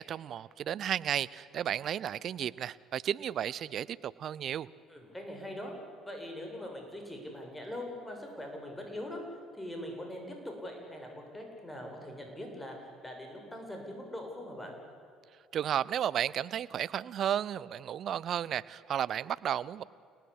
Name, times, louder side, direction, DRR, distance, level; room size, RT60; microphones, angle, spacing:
voice 1, 0.0-4.7 15.5-19.8, right 10 dB, 55° right, 19 dB, 0.7 m, -33 dB
voice 2, 4.9-5.7 6.0-9.2 9.5-14.8, left 1 dB, 10° left, 2 dB, 7.8 m, -42 dB
30.0 x 19.0 x 8.7 m, 2.4 s
hypercardioid pair, 60°, 0 cm